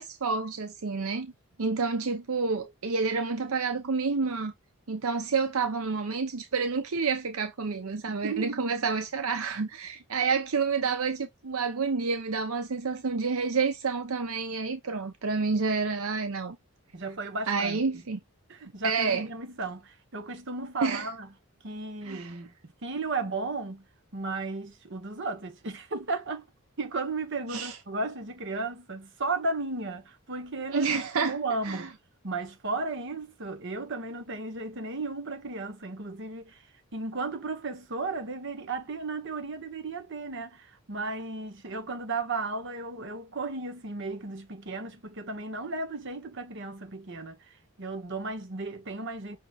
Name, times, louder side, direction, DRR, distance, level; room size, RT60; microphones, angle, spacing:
voice 1, 0.0-1.3 1.6-4.5 4.9-16.6 17.5-18.2 18.8-19.3 20.8-21.1 22.0-22.4 27.5-27.8 30.7-31.4 31.6-31.9, right 4 dB, 80° right, 0.7 m, -29 dB
voice 2, 8.1-8.8 16.9-17.8 18.5-21.3 21.6-23.8 24.1-26.4 26.8-31.9 32.2-36.6 36.9-47.4 47.8-49.4, right 3 dB, 55° right, 1.1 m, -34 dB
5.8 x 3.7 x 2.4 m
head